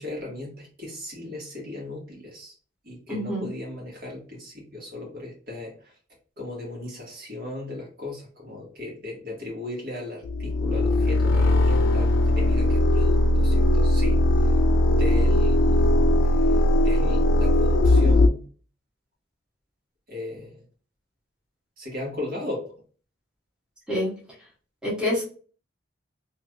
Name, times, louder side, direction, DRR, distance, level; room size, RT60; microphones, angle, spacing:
voice 1, 0.0-2.5 2.8-5.9 6.4-14.5 14.8-15.8 16.4-18.4 20.1-20.6 21.8-22.6, left 2 dB, 50° right, -3 dB, 1.5 m, -36 dB
voice 2, 3.1-3.5 23.9-24.1 24.8-25.2, left 1 dB, 5° right, -6 dB, 1.2 m, -26 dB
sound 1, 10.2-18.3, left 1 dB, 70° left, 0.3 m, -19 dB
3.3 x 2.9 x 2.3 m, 0.41 s
head